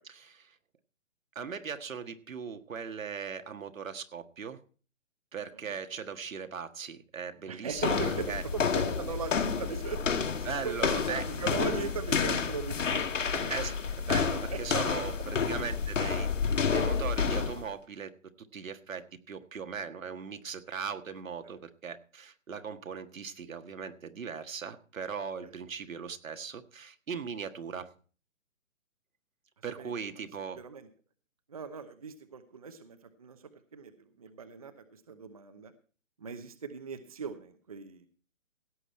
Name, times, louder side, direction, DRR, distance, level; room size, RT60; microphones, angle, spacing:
voice 1, 0.0-0.5 1.3-4.6 5.3-8.4 10.4-11.3 13.5-16.3 16.7-18.1 18.4-27.9 29.6-30.6, right 6 dB, 80° right, 8 dB, 1.7 m, -39 dB
voice 2, 7.5-10.0 10.4-13.0 13.3-13.5 14.5-15.0 21.4-21.5 29.8-29.9 30.6-30.9 31.5-33.4 33.7-33.9 34.2-34.7 35.1-35.7 36.2-38.1, right 6 dB, 30° right, 9 dB, 0.8 m, -39 dB
sound 1, 7.8-17.7, left 6 dB, 70° left, 2.1 m, -30 dB
16.5 x 8.2 x 4.4 m, 0.40 s
hypercardioid pair, 175°, 39 cm